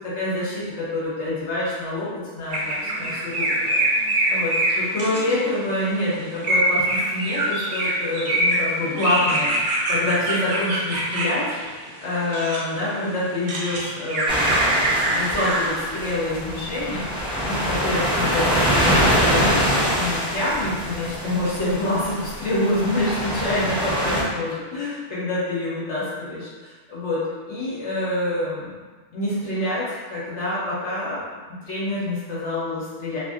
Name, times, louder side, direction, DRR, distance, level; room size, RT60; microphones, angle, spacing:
voice 1, 0.0-2.1 2.3-3.5 3.9-4.0 4.3-11.5 12.0-14.6 14.9-19.7 20.0-28.8 29.1-31.2 31.5-33.2, left 1 dB, 70° left, -8 dB, 1.1 m, -26 dB
sound 1, 2.5-5.7 6.4-12.6 13.1-15.8, right 1 dB, 55° right, 0.6 m, -24 dB
sound 2, 14.3-24.2, equal, 5° right, 0.6 m, -24 dB
2.9 x 2.6 x 2.3 m, 1.4 s
omnidirectional pair, 1.2 m